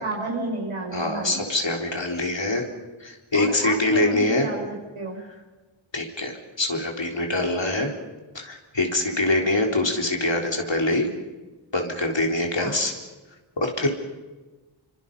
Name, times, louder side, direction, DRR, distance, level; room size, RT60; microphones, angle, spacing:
voice 1, 0.0-1.4 3.3-5.2 12.6-12.8, right 2 dB, 90° right, -2 dB, 5.5 m, -31 dB
voice 2, 0.9-2.6 3.0-4.5 5.9-7.9 8.3-11.1 11.7-12.9 13.6-13.9, left 2 dB, 65° left, 2 dB, 4.0 m, -24 dB
28.0 x 25.0 x 5.6 m, 1.2 s
wide cardioid pair, 45°, 48 cm